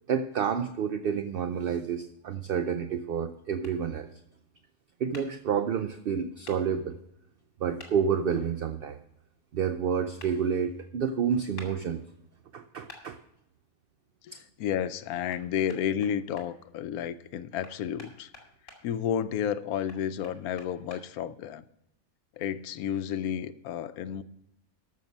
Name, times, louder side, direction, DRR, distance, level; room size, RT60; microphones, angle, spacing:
voice 1, 0.1-4.1 5.0-7.0 7.6-9.0 9.5-12.0 12.5-13.2 14.3-14.4, right 7 dB, 60° right, 9 dB, 0.6 m, -29 dB
sound 1, 3.6-3.8 5.1-5.3 6.4-6.6 7.8-7.9 10.2-10.3 11.6-11.7 12.9-13.0 15.3-15.4 15.7-16.5 17.6-18.8 19.9-21.0, left 3 dB, 55° left, 2.7 m, -47 dB
voice 2, 14.2-18.3 18.8-21.6 22.4-24.2, left 9 dB, 85° left, 14 dB, 1.1 m, -31 dB
13.0 x 6.7 x 5.3 m, 0.82 s
omnidirectional pair, 1.5 m